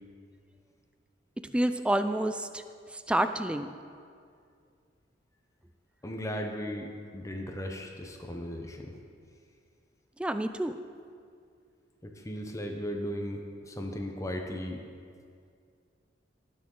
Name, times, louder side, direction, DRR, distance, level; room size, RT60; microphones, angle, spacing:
voice 1, 1.5-2.6 2.9-3.8 10.2-10.8, right 1 dB, 5° right, 9 dB, 0.3 m, -28 dB
voice 2, 6.0-8.9 12.0-14.8, equal, 15° left, 3 dB, 0.7 m, -36 dB
18.0 x 6.3 x 3.7 m, 2.3 s
head